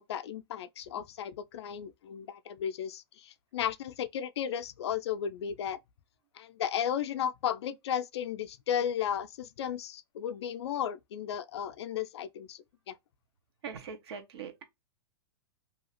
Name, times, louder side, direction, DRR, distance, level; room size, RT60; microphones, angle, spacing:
voice 1, 0.0-5.8 6.3-13.0, left 9 dB, 80° left, 0.4 m, -34 dB
voice 2, 13.6-14.6, right 6 dB, 70° right, 0.9 m, -41 dB
2.7 x 2.4 x 2.9 m
hypercardioid pair, 135°, 14 cm